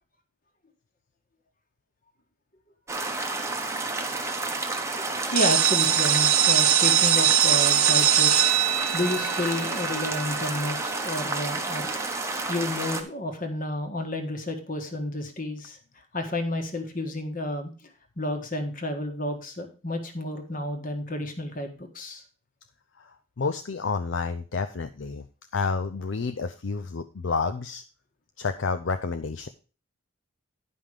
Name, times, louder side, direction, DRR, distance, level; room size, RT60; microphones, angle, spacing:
sound 1, 2.9-13.0, right 3 dB, 15° right, 0.9 m, -30 dB
voice 1, 5.1-12.0 12.5-15.8 16.1-17.7 18.2-22.2, left 1 dB, 40° left, 6 dB, 1.6 m, -31 dB
sound 2, 5.4-11.0, right 10 dB, 90° right, 1.2 m, -22 dB
voice 2, 23.4-25.2 25.5-27.8 28.4-29.5, left 4 dB, 60° left, 8 dB, 0.5 m, -29 dB
10.5 x 5.6 x 4.9 m, 0.36 s
head